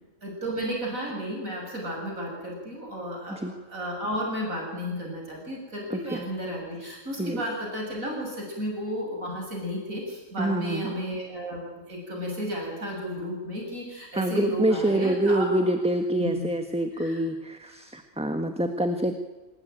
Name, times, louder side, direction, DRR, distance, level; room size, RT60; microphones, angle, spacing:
voice 1, 0.2-3.4 3.7-15.5 17.0-17.2, equal, 90° right, 0 dB, 7.2 m, -33 dB
voice 2, 5.9-6.3 7.2-7.4 10.4-11.0 14.1-19.2, right 1 dB, 5° right, 6 dB, 1.6 m, -26 dB
26.5 x 20.5 x 9.2 m, 1.2 s
omnidirectional pair, 1.4 m